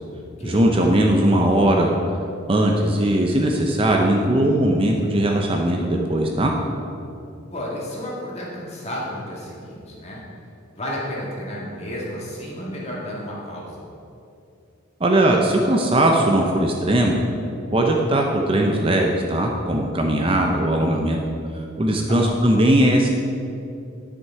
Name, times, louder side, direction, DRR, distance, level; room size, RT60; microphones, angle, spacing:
voice 1, 0.4-1.9 2.5-6.5 15.0-17.2 17.7-21.2 21.5-23.1, right 1 dB, 25° right, 1 dB, 0.5 m, -19 dB
voice 2, 7.5-10.2 10.7-13.9 22.1-22.4, left 1 dB, 30° left, -4 dB, 1.8 m, -32 dB
10.0 x 6.4 x 4.7 m, 2.7 s
head